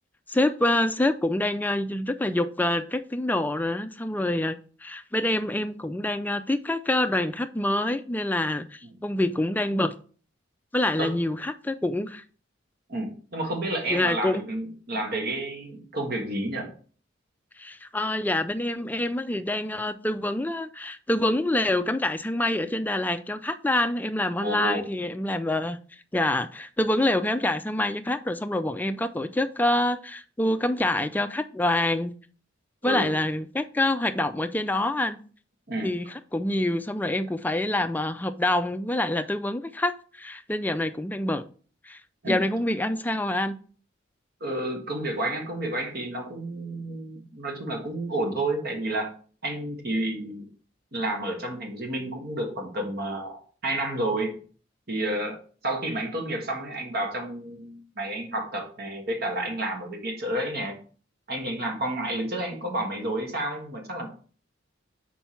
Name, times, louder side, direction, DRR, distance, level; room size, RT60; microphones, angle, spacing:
voice 1, 0.3-9.9 10.7-12.2 13.9-14.4 17.6-25.8 26.1-32.1 32.8-35.2 35.8-41.5 41.8-42.0 42.3-43.6, left 1 dB, 10° left, 0.3 m, -26 dB
voice 2, 12.9-16.7 24.4-24.8 32.8-33.1 35.7-35.9 42.2-42.4 44.4-49.1 49.4-50.5 50.9-54.4 54.9-60.8 61.3-64.1, right 1 dB, 55° right, 1.5 m, -30 dB
5.7 x 4.5 x 4.4 m
head